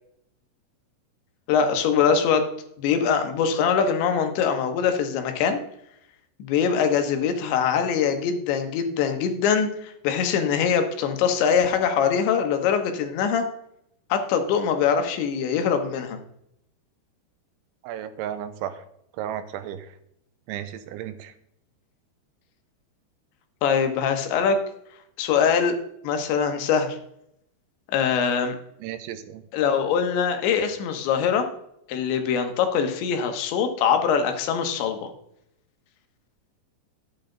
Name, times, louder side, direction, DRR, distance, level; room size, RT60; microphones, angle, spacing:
voice 1, 1.5-2.5 2.8-5.6 6.4-13.5 14.1-16.2 23.6-24.6 25.2-25.8 26.0-27.0 27.9-28.6 29.5-31.5 31.9-35.1, left 7 dB, 75° left, 6 dB, 3.3 m, -23 dB
voice 2, 17.8-18.7 19.2-19.9 20.5-21.3 28.8-29.4, right 10 dB, 85° right, 11 dB, 3.1 m, -33 dB
12.5 x 8.9 x 3.9 m, 0.76 s
omnidirectional pair, 5.5 m